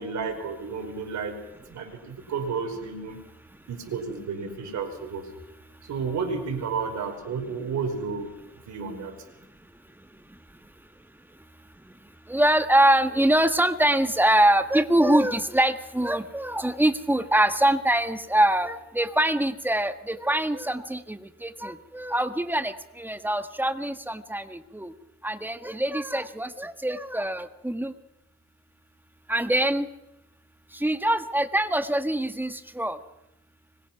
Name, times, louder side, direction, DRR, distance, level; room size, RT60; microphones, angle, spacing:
voice 1, 0.0-1.4 1.7-3.2 3.7-5.3 5.8-8.3 8.7-9.1, right 5 dB, 65° right, 2 dB, 5.1 m, -31 dB
voice 2, 12.3-24.9 25.2-27.9 29.3-29.9 30.7-33.0, right 1 dB, 5° right, 9 dB, 1.7 m, -24 dB
25.0 x 22.0 x 6.0 m, 0.86 s
cardioid pair, 90°, 30 cm